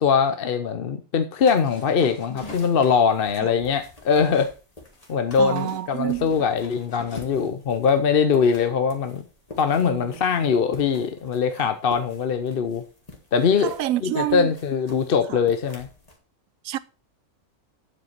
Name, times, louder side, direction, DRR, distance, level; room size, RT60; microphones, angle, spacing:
voice 1, 0.0-4.5 5.1-9.2 9.6-12.8 13.3-13.7 14.0-15.9, left 6 dB, 50° left, 0.8 m, -22 dB
sound 1, 1.4-16.2, left 2 dB, 30° left, 2.0 m, -47 dB
sound 2, 1.6-4.6 4.9-7.4, left 3 dB, 90° left, 2.7 m, -46 dB
voice 2, 5.4-6.3 9.8-10.1 11.6-11.7 13.6-14.5 15.3-15.4 16.6-16.8, right 14 dB, 90° right, 1.0 m, -27 dB
8.8 x 7.7 x 4.4 m
omnidirectional pair, 1.4 m